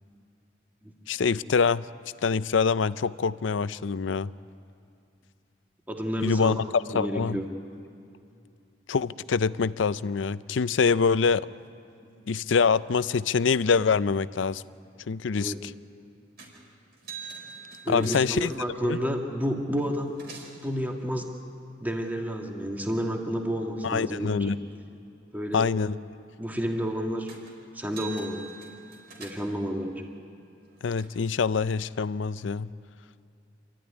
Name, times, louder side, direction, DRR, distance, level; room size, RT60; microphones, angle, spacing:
voice 1, 1.1-1.9 2.2-4.3 6.2-7.4 8.9-11.5 12.3-14.6 15.1-15.7 17.9-18.5 18.8-19.0 23.8-24.6 25.5-25.9 30.8-32.7, left 5 dB, 80° left, 16 dB, 0.5 m, -25 dB
voice 2, 5.9-6.6 6.9-7.5 15.4-15.6 17.9-20.1 20.6-21.3 21.8-24.5 25.3-25.7 26.4-27.3 27.7-28.5 29.2-30.0, equal, 10° right, 1 dB, 1.8 m, -30 dB
caja registradora, 16.4-16.6 16.9-18.6 19.5-19.6 19.9-20.6 27.3-27.5 27.8-29.6 30.4-31.0, right 5 dB, 60° right, 4.5 m, -44 dB
26.5 x 14.0 x 9.8 m, 2.7 s
head